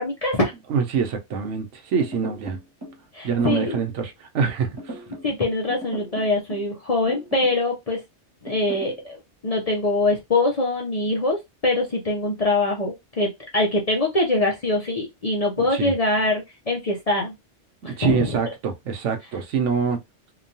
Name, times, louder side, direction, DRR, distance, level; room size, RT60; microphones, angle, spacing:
voice 1, 0.0-0.5 3.1-3.8 5.2-8.0 8.4-17.3 17.8-18.3, left 2 dB, 40° left, 0.5 m, -23 dB
voice 2, 0.7-2.6 3.2-4.9 15.7-15.9 17.8-20.0, right 6 dB, 75° right, 1.0 m, -25 dB
sound 1, 2.0-3.0 3.4-3.9 4.8-5.3 5.7-6.7 7.1-7.6 8.5-9.0, right 1 dB, 20° right, 1.0 m, -37 dB
2.9 x 2.2 x 2.6 m
omnidirectional pair, 1.3 m